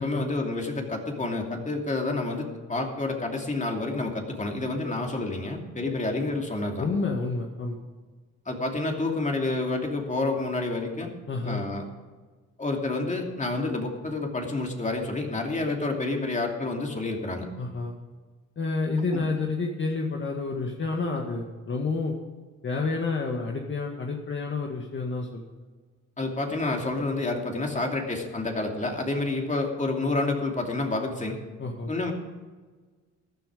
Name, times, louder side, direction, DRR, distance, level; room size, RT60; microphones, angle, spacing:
voice 1, 0.0-6.9 8.5-11.1 11.4-11.8 12.6-17.5 19.1-19.3 26.2-31.4 31.9-32.1, left 2 dB, 25° left, 2 dB, 2.7 m, -29 dB
voice 2, 6.8-7.8 11.3-11.6 17.6-17.9 18.6-22.2 22.6-25.4 31.6-31.9, left 3 dB, 40° left, 1 dB, 1.9 m, -29 dB
14.5 x 10.5 x 5.0 m, 1.4 s
cardioid pair, 90°, 30 cm